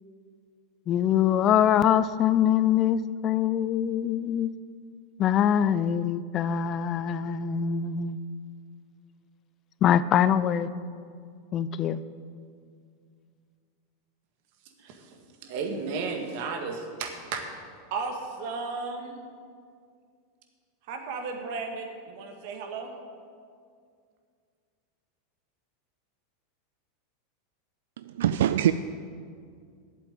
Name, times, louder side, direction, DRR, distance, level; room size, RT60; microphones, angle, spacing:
voice 1, 0.9-4.5 5.2-8.2 9.8-10.7 11.5-12.0, left 9 dB, 40° left, 0.4 m, -24 dB
voice 2, 14.8-17.4 17.9-19.2 20.9-22.9, right 4 dB, 60° right, 1.8 m, -34 dB
voice 3, 28.0-28.7, right 11 dB, 75° right, 0.3 m, -23 dB
8.6 x 7.7 x 9.0 m
hypercardioid pair, 100°, 0 cm